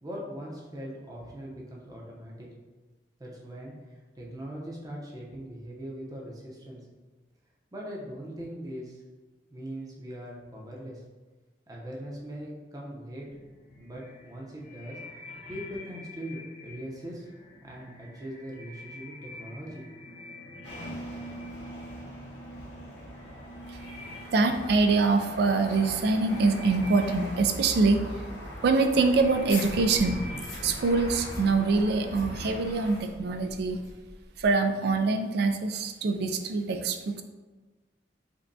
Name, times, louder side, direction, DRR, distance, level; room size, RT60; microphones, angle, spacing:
voice 1, 0.0-2.5 3.2-6.8 7.7-9.0 9.5-11.0 11.7-13.3 13.8-15.0 15.5-17.3 17.6-19.8, equal, 20° right, -3 dB, 0.7 m, -40 dB
sound 1, 13.3-32.4, equal, 30° left, 0.8 m, -46 dB
sound 2, 20.6-33.0, equal, 75° left, 1.1 m, -41 dB
voice 2, 24.3-28.0 28.6-30.2 30.6-33.8 34.4-37.2, right 3 dB, 60° right, 7 dB, 0.3 m, -24 dB
sound 3, 29.4-34.5, left 1 dB, 55° left, 1.2 m, -42 dB
5.2 x 2.2 x 2.6 m, 1.3 s
head